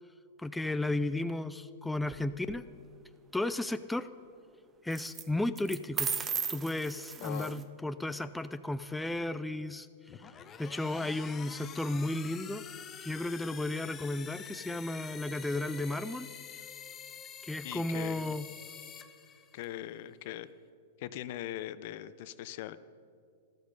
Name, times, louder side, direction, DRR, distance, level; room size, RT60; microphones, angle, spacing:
voice 1, 0.4-2.6 3.3-4.1 4.8-6.1 6.5-10.3 10.6-12.6 13.0-16.3 17.4-18.5, left 2 dB, 5° left, 11 dB, 0.3 m, -34 dB
sound 1, 2.0-2.6 4.9-5.2 5.6-7.6, right 6 dB, 20° right, 0.7 m, -36 dB
voice 2, 7.2-7.6 17.6-18.3 19.5-20.5 21.0-22.8, left 13 dB, 55° left, 15 dB, 0.6 m, -40 dB
sound 2, 10.1-19.8, left 8 dB, 25° left, 0.8 m, -47 dB
13.5 x 13.5 x 5.4 m, 2.4 s
hypercardioid pair, 135°, 0 cm